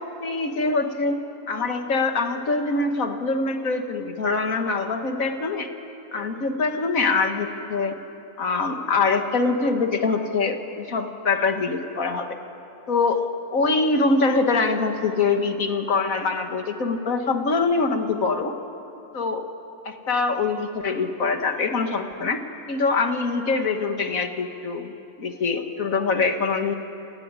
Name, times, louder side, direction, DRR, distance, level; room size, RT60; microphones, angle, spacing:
voice 1, 0.2-1.2 1.5-5.7 6.1-8.0 8.4-12.4 12.9-18.6 19.1-19.5 19.9-22.4 22.7-24.9 25.2-26.7, left 4 dB, 65° left, 6 dB, 2.1 m, -24 dB
28.0 x 18.0 x 9.7 m, 3.0 s
omnidirectional pair, 1.5 m